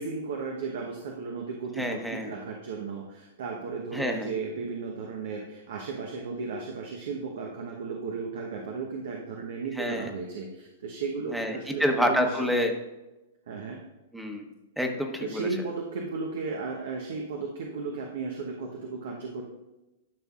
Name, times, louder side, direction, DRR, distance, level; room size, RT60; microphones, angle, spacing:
voice 1, 0.0-12.4 13.5-13.8 15.2-19.4, right 4 dB, 75° right, 0 dB, 1.0 m, -35 dB
voice 2, 1.8-2.3 3.9-4.3 9.8-10.1 11.3-12.7 14.1-15.5, equal, ahead, 4 dB, 1.0 m, -28 dB
12.0 x 5.6 x 2.5 m, 1.0 s
hypercardioid pair, 120°, 0 cm